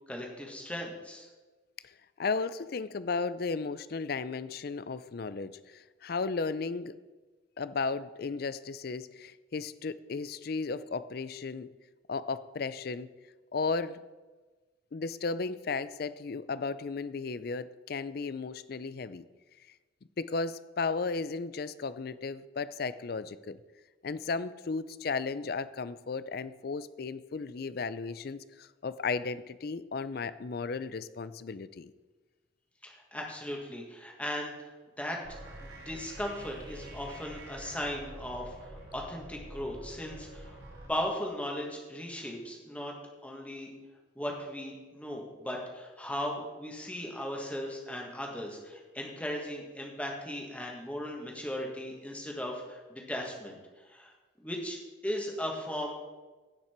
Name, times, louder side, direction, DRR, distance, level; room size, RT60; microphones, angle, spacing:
voice 1, 0.1-1.3 32.8-40.6 40.9-42.9 43.2-43.7 44.1-53.6 53.8-54.1 54.4-55.9, equal, 5° left, 0 dB, 1.6 m, -37 dB
voice 2, 2.2-7.0 7.6-11.7 12.1-13.1 13.5-14.0 14.9-19.2 20.2-23.6 24.0-31.9, left 4 dB, 50° left, 15 dB, 0.4 m, -35 dB
sound 1, 35.2-40.9, right 1 dB, 80° right, 3.1 m, -47 dB
16.5 x 5.9 x 4.5 m, 1.3 s
head